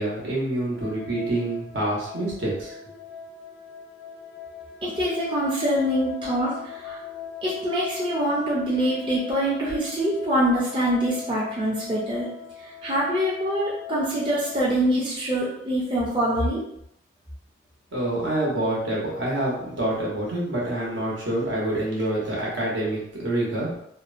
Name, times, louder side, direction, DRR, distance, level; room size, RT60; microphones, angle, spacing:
voice 1, 0.0-2.7 17.9-23.7, right 1 dB, 70° right, -5 dB, 0.9 m, -27 dB
sound 1, 0.7-14.6, left 9 dB, 90° left, 0.6 m, -40 dB
voice 2, 4.8-7.0 7.4-12.3 12.6-16.6, right 1 dB, 25° right, -6 dB, 0.5 m, -25 dB
2.7 x 2.1 x 2.5 m, 0.74 s
head